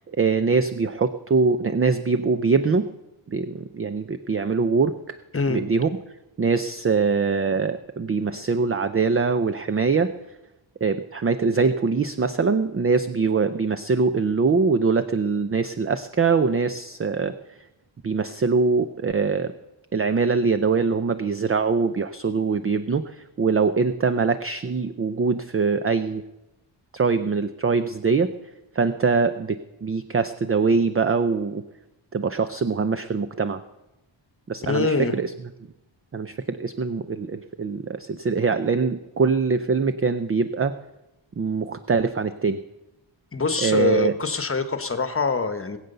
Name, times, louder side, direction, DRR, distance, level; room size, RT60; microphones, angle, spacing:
voice 1, 0.1-2.9 3.3-5.2 5.5-5.9 6.4-10.1 10.8-17.3 18.0-19.5 19.9-26.2 26.9-28.3 28.7-31.6 32.1-33.6 34.5-35.3 36.1-40.7 41.4-42.6 43.6-44.1, right 4 dB, 30° right, 11 dB, 0.5 m, -23 dB
voice 2, 34.7-35.2 43.3-45.8, left 4 dB, 25° left, 9 dB, 1.1 m, -24 dB
20.0 x 8.1 x 6.7 m, 0.96 s
wide cardioid pair, 140°, 48 cm